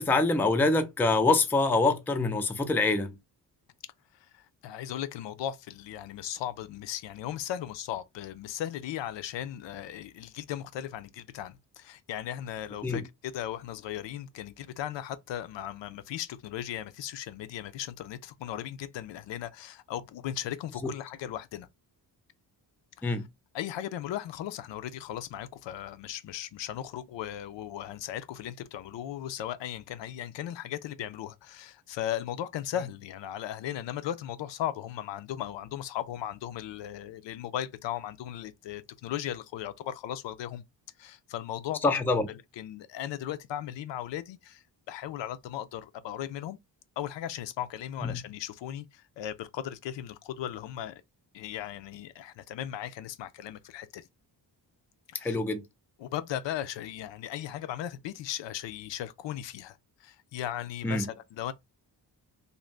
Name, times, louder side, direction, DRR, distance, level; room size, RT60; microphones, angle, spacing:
voice 1, 0.0-3.2 12.8-13.0 20.8-20.9 23.0-23.3 41.8-42.3 48.0-48.2 55.2-55.6 60.8-61.1, left 3 dB, 5° left, 0.3 m, -25 dB
voice 2, 4.3-21.7 23.0-23.1 23.5-40.6 41.0-42.0 42.3-46.6 47.0-51.0 51.3-54.1 55.1-55.4 56.0-61.5, left 11 dB, 80° left, 0.5 m, -37 dB
2.6 x 2.1 x 3.1 m
cardioid pair, 95°, 43 cm